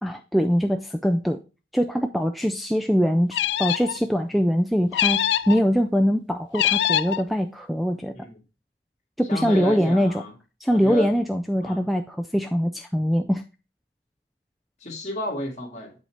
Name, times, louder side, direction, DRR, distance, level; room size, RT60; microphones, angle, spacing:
voice 1, 0.0-1.4 1.7-5.2 5.5-8.1 9.2-10.1 10.6-13.4, equal, ahead, 0.3 m, -22 dB
sound 1, 3.3-4.0 4.9-5.6 6.5-7.2, left 11 dB, 85° left, 0.4 m, -23 dB
voice 2, 9.3-10.3 10.7-11.1 11.6-11.9 14.8-15.9, left 1 dB, 40° left, 1.9 m, -32 dB
8.1 x 4.3 x 4.5 m
head